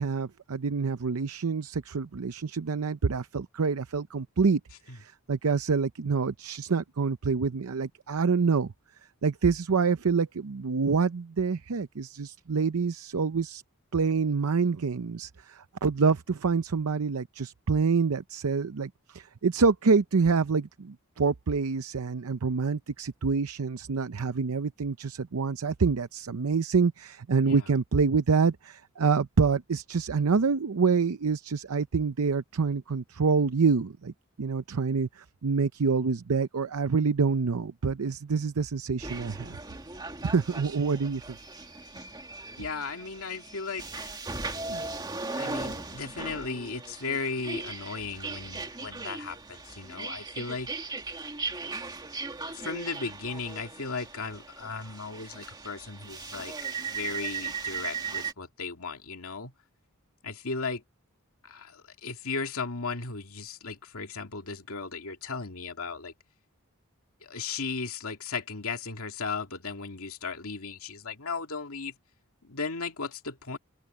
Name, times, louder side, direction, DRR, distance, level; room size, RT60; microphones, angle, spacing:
voice 1, 0.0-4.6 4.9-8.7 9.2-13.6 13.9-34.1 34.4-39.6 40.2-41.2 44.7-44.9, right 5 dB, 75° right, 0.6 m, -27 dB
sound 1, 39.0-58.3, right 4 dB, 20° right, 2.2 m, -38 dB
voice 2, 42.6-44.1 45.3-50.7 52.4-56.5 56.9-59.5 60.2-60.8 61.4-66.1 67.2-71.9 72.4-73.6, left 4 dB, 70° left, 2.4 m, -36 dB
open air
head